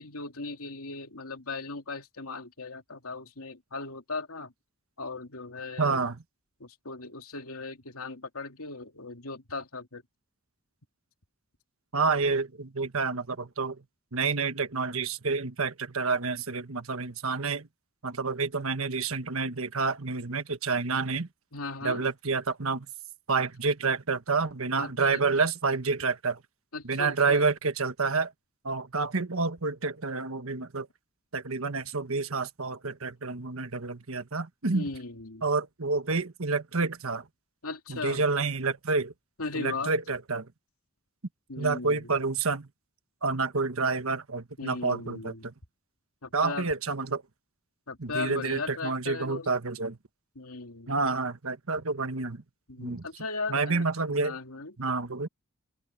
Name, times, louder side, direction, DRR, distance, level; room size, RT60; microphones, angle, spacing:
voice 1, 0.0-4.5 5.0-6.1 6.6-10.0 21.5-22.0 24.8-25.2 26.7-27.5 34.7-35.4 37.6-38.2 39.4-39.9 41.5-42.1 44.6-45.5 46.2-46.7 47.9-49.5 50.3-51.0 52.7-53.8 54.2-54.8, left 3 dB, 80° left, 2.8 m, -37 dB
voice 2, 5.8-6.2 11.9-13.8 14.1-17.7 18.0-21.3 21.8-22.9 23.3-26.4 26.8-28.3 28.6-30.9 31.3-34.8 35.4-37.3 37.9-39.1 39.5-40.5 41.6-42.7 43.2-45.5 46.3-47.2 48.0-50.0 50.9-52.4 52.8-53.1 53.5-54.4 54.8-55.3, right 4 dB, 70° right, 1.4 m, -29 dB
open air
head